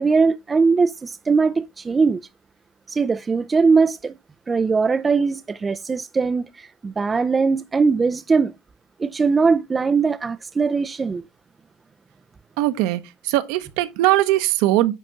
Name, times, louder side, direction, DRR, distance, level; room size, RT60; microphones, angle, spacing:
voice 1, 0.0-2.2 2.9-4.1 4.5-8.5 9.0-11.2, right 4 dB, 20° right, 0.4 m, -20 dB
voice 2, 12.6-14.9, right 15 dB, 70° right, 0.9 m, -20 dB
9.8 x 3.6 x 4.0 m
supercardioid pair, 110°, 0 cm